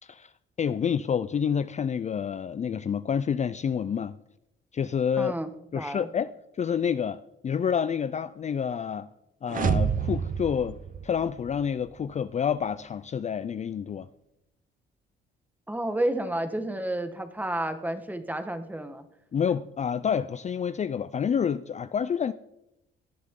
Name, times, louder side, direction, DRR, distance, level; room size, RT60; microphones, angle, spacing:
voice 1, 0.0-0.3 0.6-4.1 4.7-5.3 5.7-6.3 6.6-9.1 9.4-14.1 19.3-22.3, left 7 dB, 35° left, 0.5 m, -28 dB
voice 2, 5.2-5.5 5.8-6.1 15.7-19.1, right 1 dB, 10° right, 1.5 m, -30 dB
sound 1, 9.5-11.6, right 6 dB, 40° right, 0.7 m, -28 dB
18.0 x 11.5 x 3.8 m
cardioid pair, 90°, 20 cm